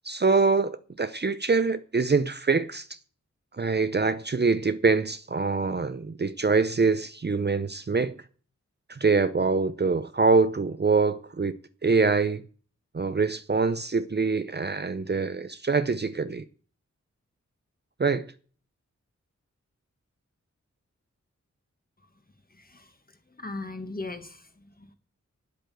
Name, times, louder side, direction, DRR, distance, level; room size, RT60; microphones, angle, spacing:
voice 1, 0.0-2.9 3.6-8.2 8.9-12.4 12.9-16.4 18.0-18.3, right 4 dB, 35° right, 0.6 m, -24 dB
voice 2, 22.5-22.9 23.4-24.9, left 2 dB, 30° left, 1.7 m, -38 dB
9.0 x 8.2 x 7.7 m
wide cardioid pair, 70°, 29 cm